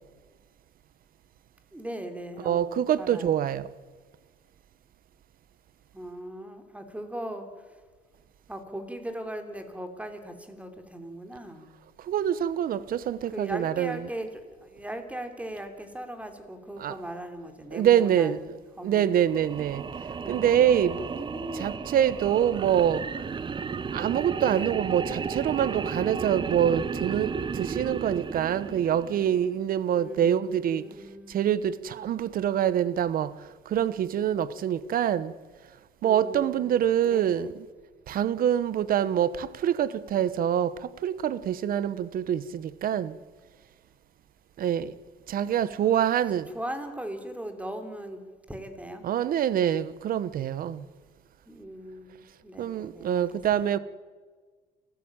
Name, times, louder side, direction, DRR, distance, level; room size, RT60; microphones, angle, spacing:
voice 1, 1.7-3.4 5.9-7.8 8.5-11.7 13.3-19.1 20.2-21.8 24.4-24.8 30.0-31.9 36.0-37.6 45.5-46.0 46.3-49.0 51.5-53.7, right 1 dB, 10° right, 3.5 m, -39 dB
voice 2, 2.4-3.7 12.1-14.0 16.8-16.9 17.7-18.4 18.8-19.8 20.3-21.2 21.6-23.0 23.9-30.8 31.3-33.3 33.7-35.3 36.0-37.5 38.1-43.1 44.6-44.9 45.3-46.5 49.0-50.9 52.6-53.8, right 10 dB, 60° right, 1.2 m, -25 dB
sound 1, 19.2-29.5, right 6 dB, 30° right, 0.9 m, -34 dB
28.5 x 14.0 x 8.9 m
cardioid pair, 110°, 17 cm